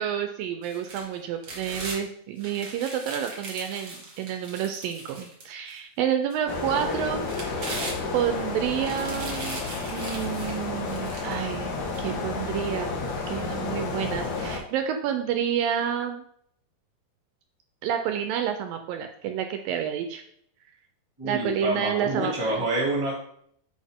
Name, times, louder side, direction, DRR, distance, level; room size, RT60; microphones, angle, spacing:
voice 1, 0.0-7.3 8.1-9.6 9.9-16.2 17.8-20.2 21.2-22.7, right 9 dB, 80° right, 6 dB, 2.2 m, -29 dB
sound 1, 0.6-2.0 2.4-5.8 6.3-6.4 7.0-8.4 8.8-11.4 11.9-12.0, right 2 dB, 40° right, 1.6 m, -39 dB
sound 2, 6.5-14.6, left 4 dB, 60° left, 2.4 m, -31 dB
voice 2, 21.2-23.2, right 1 dB, 10° right, -3 dB, 1.6 m, -27 dB
8.6 x 5.6 x 3.6 m, 0.66 s
omnidirectional pair, 4.4 m